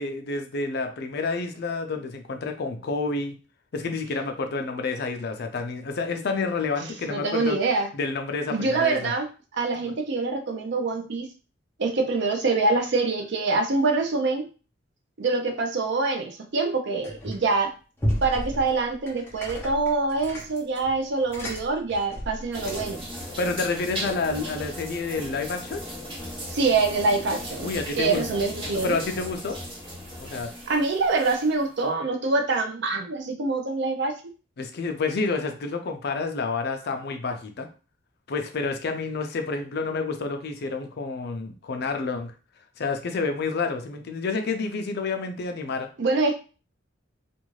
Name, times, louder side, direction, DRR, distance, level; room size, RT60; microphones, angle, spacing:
voice 1, 0.0-3.3 3.7-7.6 7.9-9.1 23.4-25.8 27.6-28.2 28.8-29.6 30.2-30.5 34.6-37.7 38.3-42.3 42.8-45.9, left 4 dB, 55° left, 6 dB, 0.4 m, -29 dB
voice 2, 6.8-7.9 8.5-9.3 9.5-11.3 11.8-14.5 15.2-17.7 18.2-23.1 26.5-27.7 28.0-29.0 30.7-34.3 46.0-46.3, right 3 dB, 55° right, 4 dB, 0.5 m, -25 dB
sound 1, 17.0-17.6 18.0-23.1, equal, 10° left, 0.6 m, -33 dB
sound 2, 22.5-31.7, equal, 25° right, 0.9 m, -37 dB
2.5 x 2.3 x 3.0 m, 0.35 s
head